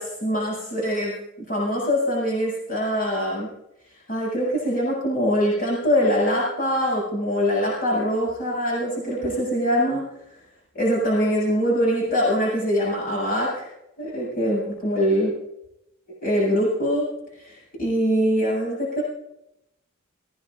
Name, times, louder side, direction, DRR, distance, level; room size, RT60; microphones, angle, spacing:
voice 1, 0.0-3.5 4.1-10.1 10.7-13.7 14.0-15.3 16.1-17.1 17.4-19.0, equal, 45° left, -5 dB, 7.6 m, -23 dB
21.5 x 19.0 x 2.6 m, 0.83 s
head